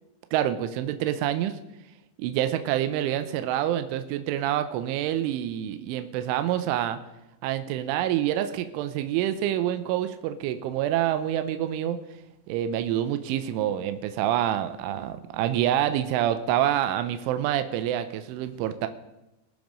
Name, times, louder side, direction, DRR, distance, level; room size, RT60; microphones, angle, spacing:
voice 1, 0.3-1.6 2.2-7.0 7.4-12.0 12.5-18.9, right 11 dB, 85° right, 10 dB, 3.2 m, -27 dB
21.5 x 7.2 x 5.2 m, 0.95 s
omnidirectional pair, 5.4 m